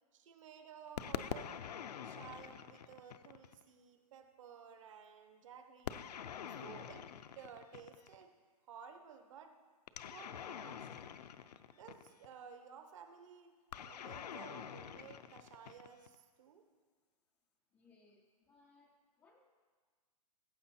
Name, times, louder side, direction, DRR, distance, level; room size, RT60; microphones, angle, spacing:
voice 1, 0.1-1.7 2.0-6.0 6.5-7.1 7.3-8.3 8.7-9.6 10.0-10.9 11.7-13.5 13.9-16.7, right 7 dB, 50° right, 7 dB, 1.1 m, -55 dB
sound 1, 1.0-3.6 5.9-8.2 9.9-12.3 13.7-16.2, left 8 dB, 80° left, 0.6 m, -46 dB
voice 2, 17.7-19.4, left 3 dB, 5° left, -1 dB, 0.3 m, -67 dB
14.5 x 7.7 x 4.3 m, 1.5 s
hypercardioid pair, 155°, 20 cm